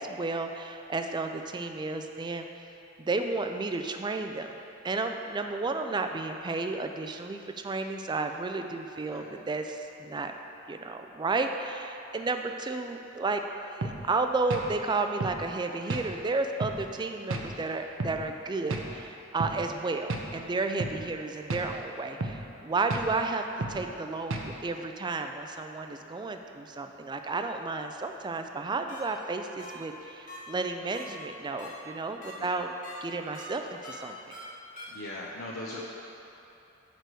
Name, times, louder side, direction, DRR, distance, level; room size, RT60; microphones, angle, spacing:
voice 1, 0.0-2.5 3.0-10.3 10.7-32.7 33.0-34.3, right 3 dB, 20° right, 6 dB, 0.4 m, -32 dB
sound 1, 13.8-14.0 14.5-14.7 15.2-15.4 15.9-16.1 16.6-16.8 17.3-17.5 18.0-18.2 18.7-18.9 19.4-19.6 20.1-20.3 20.8-21.0 21.5-21.7 22.2-22.4 22.9-23.1 23.6-23.8 24.3-24.5, right 2 dB, 70° right, 0.6 m, -32 dB
sound 2, 28.9-29.0 29.6-29.7 30.3-30.4 30.9-31.0 31.6-31.7 32.2-32.3 32.8-32.9 33.3-33.4 33.8-33.9 34.3-34.4 34.8-34.9, left 2 dB, 45° left, 1.6 m, -44 dB
voice 2, 34.9-35.9, left 1 dB, 70° left, -5 dB, 0.7 m, -39 dB
6.7 x 4.7 x 6.2 m, 2.9 s
head